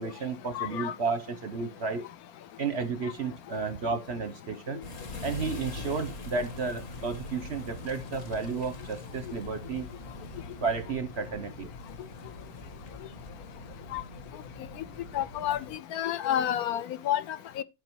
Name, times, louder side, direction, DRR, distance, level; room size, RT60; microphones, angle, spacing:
voice 1, 0.0-2.0 2.6-4.8 5.2-9.9 10.6-11.7, right 4 dB, 55° right, 0.8 m, -32 dB
voice 2, 0.5-0.9 13.9-14.0 15.1-17.6, left 11 dB, 70° left, 0.9 m, -30 dB
sound 1, 4.8-15.8, left 2 dB, 45° left, 1.8 m, -42 dB
11.5 x 5.1 x 4.5 m
omnidirectional pair, 2.1 m